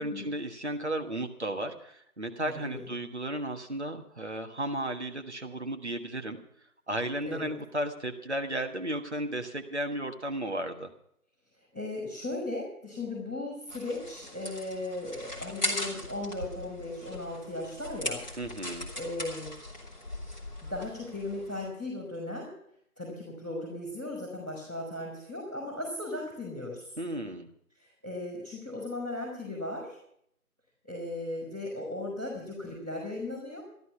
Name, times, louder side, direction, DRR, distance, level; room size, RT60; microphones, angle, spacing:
voice 1, 0.0-6.4 6.9-10.9 18.4-18.9 27.0-27.5, right 1 dB, 50° right, 4 dB, 1.5 m, -34 dB
voice 2, 2.4-2.8 7.2-7.5 11.7-18.2 18.9-19.5 20.6-22.5 23.0-26.9 27.8-30.0 30.8-33.6, left 2 dB, 5° right, -20 dB, 2.4 m, -37 dB
sound 1, 13.7-21.7, left 1 dB, 30° left, 2.9 m, -39 dB
13.5 x 12.5 x 5.8 m, 0.70 s
figure-of-eight pair, 175°, 44 cm